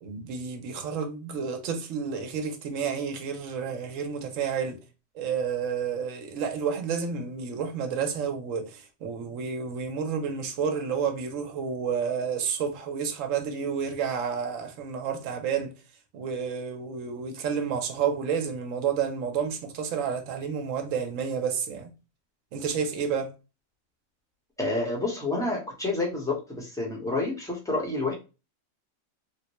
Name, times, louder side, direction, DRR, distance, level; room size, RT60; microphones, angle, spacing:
voice 1, 0.0-4.8 5.1-15.7 16.1-21.9 22.5-23.3, right 6 dB, 70° right, 1.0 m, -30 dB
voice 2, 24.6-28.1, left 2 dB, 5° left, 0.8 m, -29 dB
3.6 x 2.1 x 2.9 m
omnidirectional pair, 1.4 m